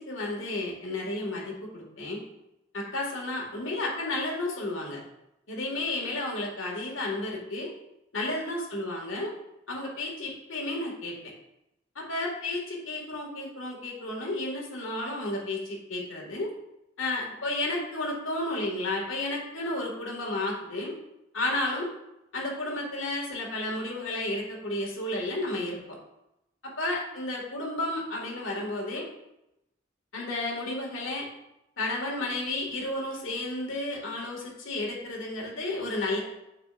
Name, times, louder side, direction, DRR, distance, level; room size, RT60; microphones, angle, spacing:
voice 1, 0.1-2.2 2.7-5.0 5.5-7.7 8.1-9.3 9.7-11.1 12.0-16.5 17.0-20.9 21.3-21.9 22.3-26.0 26.8-29.1 30.1-31.3 31.8-36.2, left 2 dB, 90° left, -1 dB, 2.0 m, -32 dB
9.0 x 6.7 x 2.5 m, 0.87 s
head